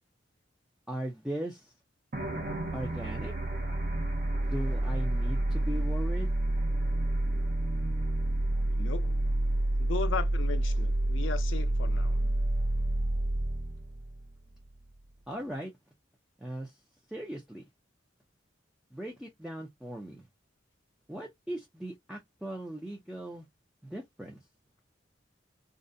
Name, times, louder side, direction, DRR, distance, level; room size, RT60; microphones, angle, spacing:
voice 1, 0.9-1.7 2.7-3.3 4.4-6.4 15.3-15.7 16.4-16.8 17.1-17.6 18.9-20.3 21.1-23.5 23.8-24.4, right 1 dB, 5° right, 0.4 m, -38 dB
sound 1, 2.1-14.8, right 1 dB, 55° right, 0.7 m, -29 dB
voice 2, 8.8-9.2 9.8-12.2, left 5 dB, 85° left, 0.5 m, -37 dB
2.4 x 2.1 x 2.6 m
head